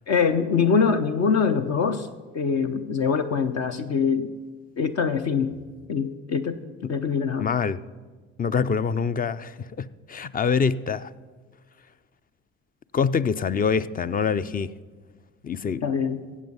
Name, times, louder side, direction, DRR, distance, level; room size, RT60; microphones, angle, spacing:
voice 1, 0.1-2.1 2.3-4.3 4.8-5.5 5.9-6.6 6.9-7.5 15.8-16.2, left 6 dB, 55° left, 0.8 m, -23 dB
voice 2, 7.4-7.8 8.4-11.1 12.9-14.7 15.4-15.8, left 6 dB, 25° left, 0.5 m, -25 dB
15.5 x 7.4 x 5.5 m
hypercardioid pair, 60°, 32 cm